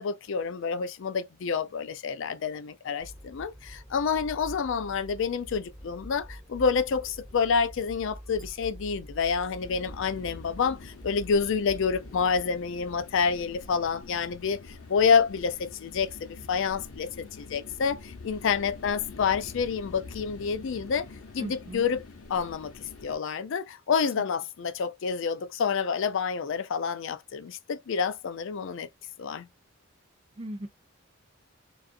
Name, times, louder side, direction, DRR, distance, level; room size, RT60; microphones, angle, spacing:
voice 1, 0.0-21.1 21.3-22.0 22.3-22.7 23.0-28.9 29.2-29.5, left 6 dB, 60° left, 0.4 m, -28 dB
sound 1, 3.0-12.4, equal, ahead, 1.3 m, -46 dB
sound 2, 9.6-23.2, left 3 dB, 85° left, 0.8 m, -46 dB
voice 2, 21.4-21.9 30.4-30.7, right 1 dB, 25° right, 0.5 m, -37 dB
2.5 x 2.4 x 2.5 m
head